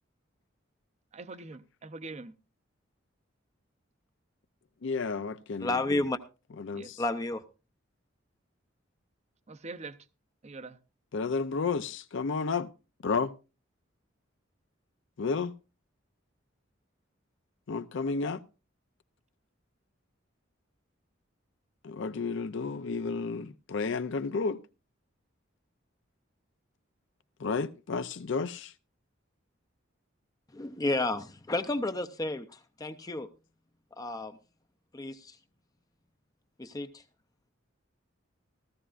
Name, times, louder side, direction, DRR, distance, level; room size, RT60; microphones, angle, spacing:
voice 1, 1.1-2.3 6.7-6.9 9.5-10.0 10.4-10.8, right 3 dB, 35° right, 0.6 m, -43 dB
voice 2, 4.8-6.0 6.6-7.0 11.1-12.7 13.0-13.3 15.2-15.5 17.7-18.4 21.8-24.6 27.4-28.7, left 4 dB, 65° left, 0.5 m, -32 dB
voice 3, 5.6-6.2 7.0-7.4 30.5-33.3 34.0-34.4 34.9-35.4 36.6-37.0, left 2 dB, 20° left, 0.5 m, -31 dB
16.0 x 14.0 x 2.5 m
head